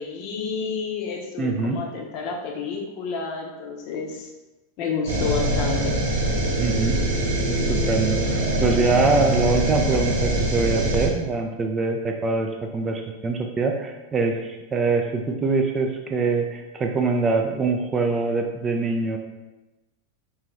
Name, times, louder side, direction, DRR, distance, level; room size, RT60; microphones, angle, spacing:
voice 1, 0.0-4.3 4.8-6.0, left 5 dB, 40° left, 1 dB, 0.6 m, -30 dB
voice 2, 1.4-1.8 6.6-7.0 7.5-19.2, right 4 dB, 20° right, 4 dB, 0.3 m, -24 dB
sound 1, 5.1-11.1, right 1 dB, 65° right, 0.8 m, -23 dB
3.7 x 2.5 x 3.0 m, 1.1 s
figure-of-eight pair, 90°, 0 cm